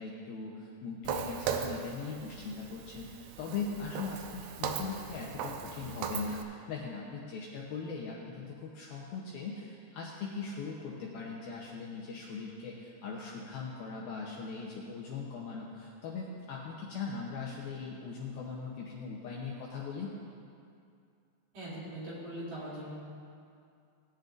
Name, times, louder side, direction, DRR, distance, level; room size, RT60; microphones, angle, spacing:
voice 1, 0.0-20.1, left 4 dB, 75° left, -4 dB, 2.4 m, -40 dB
Walk footsteps, 1.0-6.4, right 7 dB, 85° right, 2.4 m, -38 dB
voice 2, 21.5-22.9, right 1 dB, 50° right, -9 dB, 4.3 m, -41 dB
18.5 x 10.5 x 2.6 m, 2.5 s
omnidirectional pair, 5.2 m